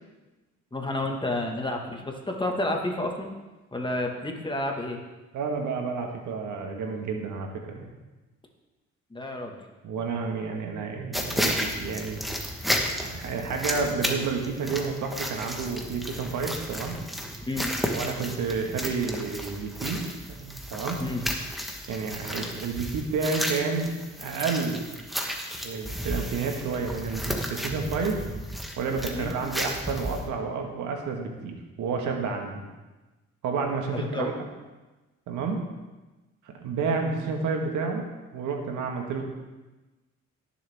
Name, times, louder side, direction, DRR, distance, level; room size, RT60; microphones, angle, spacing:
voice 1, 0.7-3.3 3.7-5.0 9.1-9.5 17.5-17.7 21.0-21.2 29.1-29.3 33.9-34.3, left 1 dB, 15° left, 1 dB, 1.7 m, -30 dB
voice 2, 5.3-7.8 9.8-12.2 12.9-16.9 17.9-20.0 20.4-21.0 21.9-23.9 24.2-24.9 25.6-28.2 28.8-32.6 33.4-34.3 35.3-35.6 36.6-38.0 38.3-39.2, right 5 dB, 80° right, 2 dB, 1.8 m, -30 dB
sound 1, 11.1-30.3, equal, ahead, 1.4 m, -33 dB
17.5 x 7.1 x 3.6 m, 1.1 s
cardioid pair, 90°, 30 cm